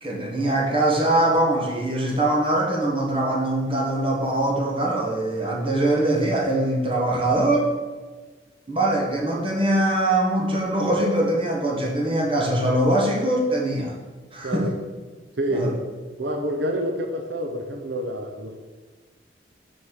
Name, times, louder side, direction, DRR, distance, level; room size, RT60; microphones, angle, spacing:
voice 1, 0.0-7.7 8.7-13.9 14.3-14.7 15.5-15.7, right 1 dB, 30° right, -3 dB, 1.6 m, -22 dB
voice 2, 14.4-14.8 15.4-15.8 16.2-18.6, right 1 dB, 80° right, 3 dB, 0.8 m, -27 dB
6.3 x 4.5 x 6.5 m, 1.4 s
head